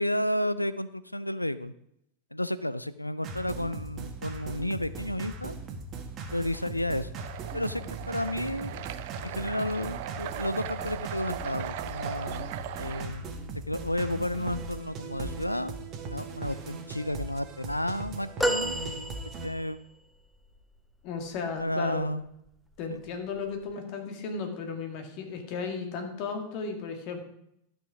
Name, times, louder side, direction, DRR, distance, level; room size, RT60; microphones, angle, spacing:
voice 1, 0.0-1.7 2.3-5.6 6.3-7.2 7.5-8.7 9.2-12.5 12.8-13.2 13.7-15.7 16.1-19.2 19.4-19.8 21.6-22.3 22.9-23.0, left 1 dB, 85° left, 15 dB, 0.4 m, -32 dB
sound 1, 3.2-19.5, right 3 dB, 30° right, 1.5 m, -39 dB
sound 2, 7.2-13.0, right 12 dB, 50° right, 0.5 m, -39 dB
sound 3, 18.4-19.8 20.5-20.6, right 1 dB, 5° left, 0.8 m, -30 dB
voice 2, 21.0-22.2 22.8-27.2, left 4 dB, 45° left, 4 dB, 1.8 m, -35 dB
12.5 x 6.2 x 4.8 m, 0.76 s
figure-of-eight pair, 90°, 0 cm